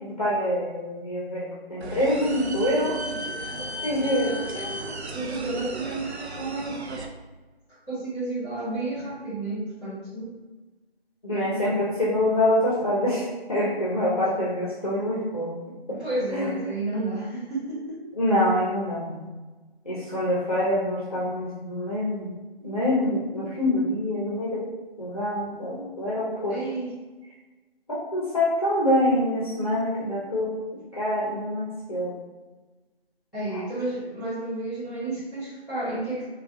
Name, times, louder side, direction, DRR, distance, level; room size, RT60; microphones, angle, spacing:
voice 1, 0.0-2.9 3.8-4.3 11.2-15.5 16.3-16.5 18.2-19.2 19.9-22.3 22.6-24.6 25.0-26.6 28.1-30.5 30.9-32.1 33.5-33.6, left 1 dB, 35° left, -7 dB, 0.6 m, -25 dB
sound 1, 1.8-7.1, right 2 dB, 85° right, 0.6 m, -34 dB
voice 2, 3.9-6.8 7.7-10.3 15.9-18.0 26.5-27.0 33.3-36.3, right 2 dB, 5° right, -17 dB, 1.5 m, -32 dB
3.3 x 2.3 x 2.6 m, 1.2 s
figure-of-eight pair, 165°, 32 cm